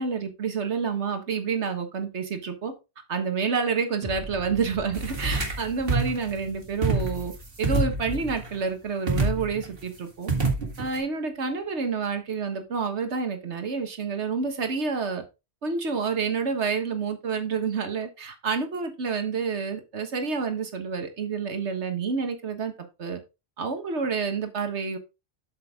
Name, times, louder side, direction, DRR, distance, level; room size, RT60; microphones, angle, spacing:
voice 1, 0.0-2.7 3.1-7.3 7.6-10.3 10.8-15.2 15.6-22.7 23.0-23.2 23.6-25.0, right 5 dB, 85° right, 1.7 m, -28 dB
sound 1, 4.0-11.1 11.5-11.6, right 2 dB, 10° right, 2.0 m, -45 dB
sound 2, 4.9-5.6 5.9-6.2 6.8-7.3 7.6-8.5 9.1-9.7 10.3-11.0, right 2 dB, 60° right, 2.2 m, -26 dB
8.0 x 6.7 x 3.6 m
omnidirectional pair, 1.1 m